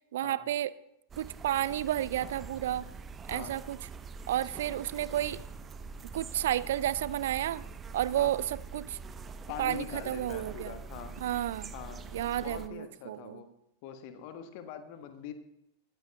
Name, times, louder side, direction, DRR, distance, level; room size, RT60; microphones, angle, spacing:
voice 1, 0.1-0.7 1.2-2.9 3.3-3.8 4.3-5.4 6.1-7.6 7.9-9.0 9.6-10.7 11.2-11.7 12.1-13.4, right 12 dB, 60° right, 18 dB, 0.4 m, -31 dB
sound 1, 1.1-12.7, right 4 dB, 20° right, 0.7 m, -44 dB
voice 2, 3.3-3.6 8.2-8.4 9.5-11.2 11.7-12.1 12.4-13.5 13.8-15.3, left 8 dB, 45° left, 8 dB, 1.4 m, -43 dB
20.5 x 14.0 x 2.3 m, 0.85 s
figure-of-eight pair, 90°, 0 cm